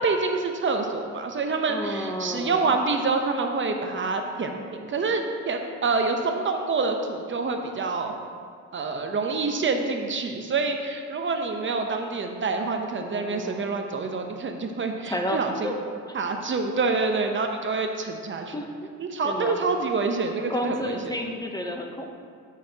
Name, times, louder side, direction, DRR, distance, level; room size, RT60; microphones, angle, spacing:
voice 1, 0.0-8.1 8.7-15.7 16.1-18.5 19.0-21.0, right 4 dB, 40° right, 4 dB, 0.8 m, -27 dB
voice 2, 1.7-2.7 13.0-13.7 15.0-15.8 16.0-16.2 18.5-18.9 19.2-19.6 20.5-22.2, left 1 dB, 15° left, 2 dB, 0.7 m, -32 dB
12.5 x 6.5 x 2.8 m, 2.2 s
cardioid pair, 90°, 30 cm